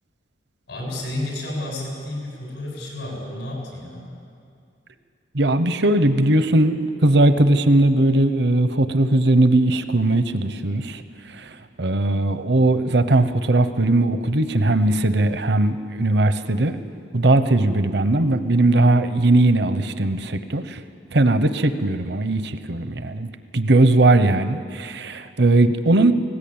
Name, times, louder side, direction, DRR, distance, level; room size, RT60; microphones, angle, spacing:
voice 1, 0.7-4.2, left 1 dB, 85° left, -1 dB, 7.2 m, -31 dB
voice 2, 5.3-11.0 11.3-16.7 17.1-20.8 21.1-26.1, right 2 dB, 65° right, 11 dB, 0.9 m, -19 dB
19.5 x 17.0 x 8.8 m, 2.4 s
head